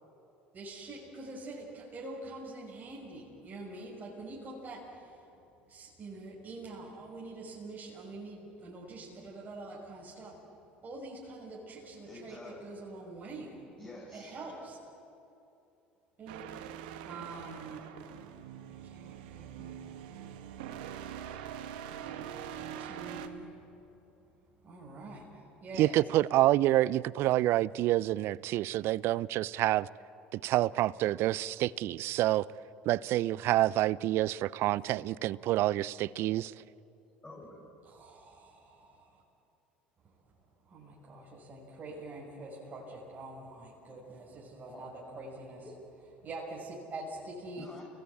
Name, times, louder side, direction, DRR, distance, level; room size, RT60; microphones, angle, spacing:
voice 1, 0.5-5.2 5.7-10.4 10.8-13.6 14.1-14.8 16.2-16.4 17.0-17.9 18.7-20.0 22.0-23.6 24.6-25.9 37.8-39.2 40.7-45.7 46.2-47.6, right 2 dB, 35° right, 5.7 m, -45 dB
voice 2, 12.1-12.7 13.8-14.4 37.2-37.6 44.7-44.9 45.6-45.7 47.6-47.8, left 2 dB, 20° left, 7.0 m, -48 dB
sound 1, 16.3-23.3, right 9 dB, 70° right, 1.4 m, -43 dB
voice 3, 25.8-29.9 30.3-32.4 32.9-36.5, right 15 dB, 55° right, 0.5 m, -28 dB
29.5 x 18.5 x 8.7 m
hypercardioid pair, 65°, 5 cm